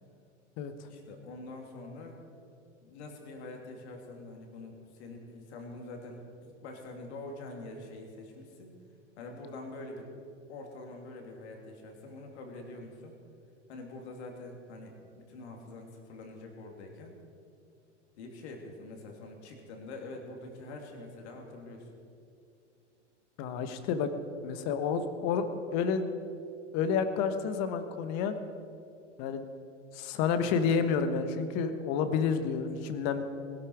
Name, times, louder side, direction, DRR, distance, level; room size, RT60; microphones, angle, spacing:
voice 1, 0.9-2.2 2.8-8.8 9.2-10.1 10.5-13.2 13.7-17.1 18.2-21.9, left 2 dB, 60° left, 2 dB, 3.1 m, -45 dB
voice 2, 23.4-24.1 24.4-25.5 25.7-26.1 26.7-28.4 29.2-29.4 29.9-33.2, left 6 dB, 45° left, 9 dB, 1.4 m, -29 dB
20.5 x 12.5 x 4.8 m, 2.5 s
figure-of-eight pair, 90°, 37 cm